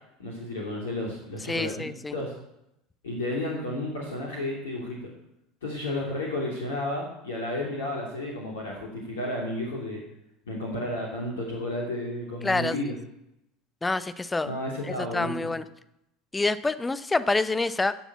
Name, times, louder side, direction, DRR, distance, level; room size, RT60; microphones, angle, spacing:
voice 1, 0.2-2.3 3.0-5.1 5.6-10.0 10.5-13.0 14.4-15.5, left 1 dB, 70° left, -2 dB, 2.9 m, -32 dB
voice 2, 1.5-2.1 12.4-12.8 13.8-14.5 14.9-15.6 16.3-17.9, left 3 dB, 15° left, 14 dB, 0.8 m, -27 dB
15.5 x 7.2 x 8.4 m, 0.84 s
figure-of-eight pair, 70°, 0 cm